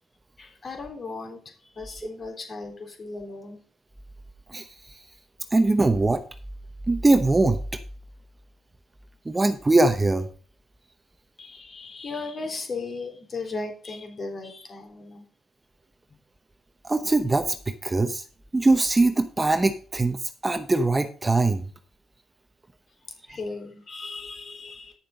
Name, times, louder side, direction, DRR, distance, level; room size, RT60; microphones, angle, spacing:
voice 1, 0.4-3.6 11.4-15.2 23.3-24.9, left 3 dB, 40° left, 4 dB, 3.4 m, -36 dB
voice 2, 5.5-6.2 6.9-7.6 9.3-10.3 16.8-18.2 18.5-20.2 20.4-21.6, right 2 dB, 20° right, 9 dB, 0.8 m, -21 dB
9.7 x 6.7 x 5.1 m, 0.41 s
cardioid pair, 90°, 0 cm